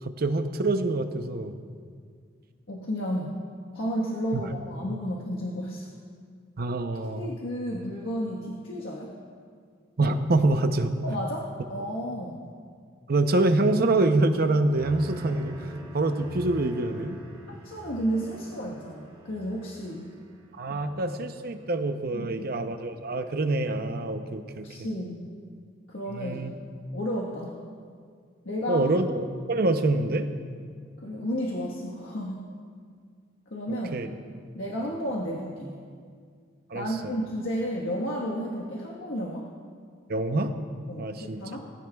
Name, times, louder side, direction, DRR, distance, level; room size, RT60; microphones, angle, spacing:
voice 1, 0.0-1.5 4.3-4.4 6.6-7.3 10.0-10.9 13.1-17.2 20.6-24.9 26.1-26.6 28.7-30.3 33.7-34.1 34.8-34.9 36.7-37.1 40.1-40.5 41.0-41.4, right 2 dB, 50° right, 7 dB, 0.7 m, -26 dB
voice 2, 2.7-3.4 3.7-5.9 7.2-9.1 11.0-12.4 17.6-20.1 20.7-21.1 22.1-22.5 24.6-25.3 25.9-26.4 26.9-27.6 28.4-28.9 31.0-32.5 33.5-33.9 34.5-35.8 36.7-39.5 40.9-41.7, equal, 85° left, -3 dB, 1.4 m, -32 dB
sound 1, 14.7-21.8 22.2-22.7, right 1 dB, 30° right, 1.9 m, -46 dB
19.0 x 15.5 x 2.4 m, 2.1 s
head